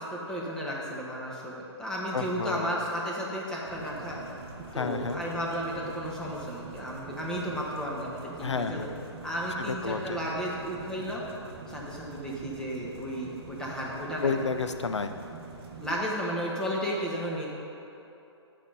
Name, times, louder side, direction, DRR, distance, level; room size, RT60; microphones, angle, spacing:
voice 1, 0.0-4.2 4.7-8.9 9.2-11.2 11.7-14.4 15.8-17.5, equal, 5° left, -4 dB, 1.1 m, -33 dB
voice 2, 2.1-2.8 4.7-5.2 8.4-9.0 9.6-10.2 14.2-15.1, left 5 dB, 80° left, 8 dB, 0.6 m, -31 dB
sound 1, 3.7-16.0, right 4 dB, 55° right, 1.1 m, -45 dB
8.7 x 5.1 x 5.4 m, 2.9 s
figure-of-eight pair, 125°, 15 cm